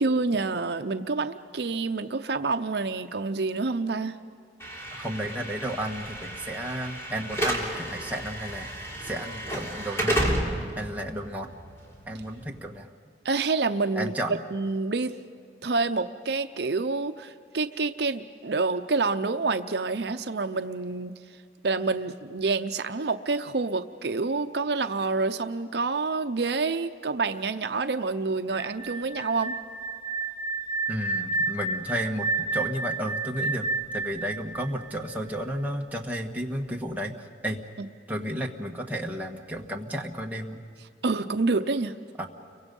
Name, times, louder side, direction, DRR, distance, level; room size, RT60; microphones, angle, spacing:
voice 1, 0.0-4.2 13.2-14.1 14.5-15.1 15.6-21.1 21.6-29.6 41.0-42.0, right 3 dB, 65° right, 8 dB, 0.7 m, -27 dB
Slam / Alarm, 4.6-12.7, right 1 dB, 15° left, 3.5 m, -32 dB
voice 2, 4.9-8.7 9.0-10.4 10.7-11.5 12.1-12.9 13.9-14.4 30.9-33.7 33.9-37.6 38.1-40.6 42.2-42.3, equal, 10° right, 0 dB, 1.5 m, -32 dB
sound 1, 28.5-35.4, right 3 dB, 40° right, 2.2 m, -31 dB
30.0 x 24.0 x 5.4 m, 2.3 s
head